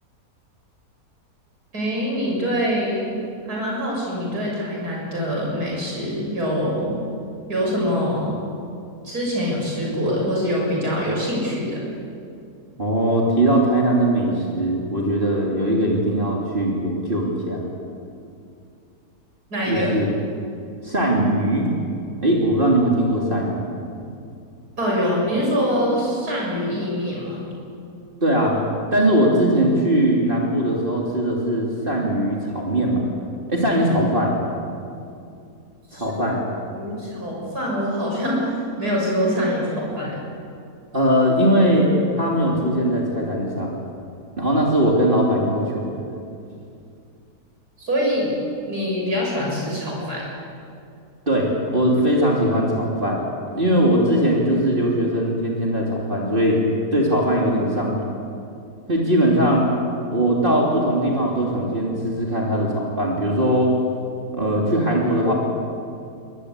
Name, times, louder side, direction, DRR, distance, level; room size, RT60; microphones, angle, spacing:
voice 1, 1.7-3.0 3.5-7.0 7.5-8.4 9.0-11.8 19.5-19.9 24.8-27.4 35.9-36.0 36.7-40.2 47.8-48.3 48.7-50.2, equal, 85° right, -3 dB, 7.6 m, -24 dB
voice 2, 12.8-17.6 19.7-20.1 20.8-21.7 22.2-23.7 28.2-28.6 28.9-33.0 33.5-34.4 35.9-36.4 40.9-41.9 42.2-43.8 44.4-46.1 51.3-53.2 53.5-56.6 56.9-58.2 58.9-59.7 60.1-63.7 64.3-65.3, right 1 dB, 35° right, -3 dB, 3.3 m, -20 dB
24.0 x 20.0 x 8.4 m, 2.4 s
omnidirectional pair, 1.6 m